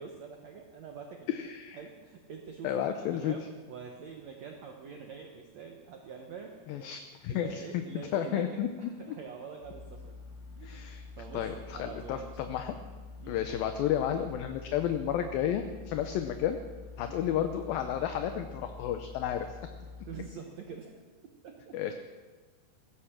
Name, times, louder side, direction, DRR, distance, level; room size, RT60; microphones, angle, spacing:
voice 1, 0.0-2.8 3.1-3.4 3.7-6.9 7.3-10.2 10.6-10.9 11.2-12.3 13.2-13.4 17.1-17.2 19.3-19.4 20.1-21.0 21.4-21.8, right 6 dB, 90° right, 3 dB, 1.5 m, -45 dB
voice 2, 1.3-1.8 2.6-3.3 6.7-7.6 8.1-8.7 10.6-11.0 11.3-12.8 13.3-16.6 17.0-19.5 21.7-21.9, left 10 dB, 75° left, 7 dB, 2.3 m, -32 dB
sound 1, 9.6-20.3, left 4 dB, 50° left, 5.5 m, -47 dB
16.0 x 13.5 x 5.9 m, 1.4 s
omnidirectional pair, 4.8 m